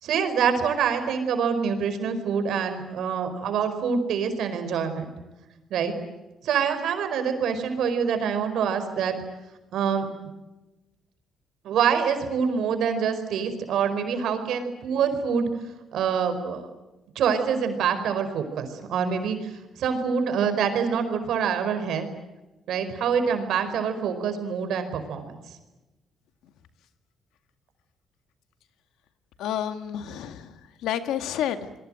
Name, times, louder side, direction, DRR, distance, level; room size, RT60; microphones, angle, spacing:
voice 1, 0.0-5.0 5.7-5.9 6.4-9.2 9.7-10.1 11.6-15.5 15.9-16.7 17.1-19.5 19.8-22.1 22.7-25.3, right 7 dB, 75° right, 8 dB, 4.9 m, -25 dB
voice 2, 29.4-31.8, left 10 dB, 90° left, 8 dB, 2.1 m, -30 dB
29.0 x 22.0 x 7.8 m, 1.1 s
cardioid pair, 90°, 0 cm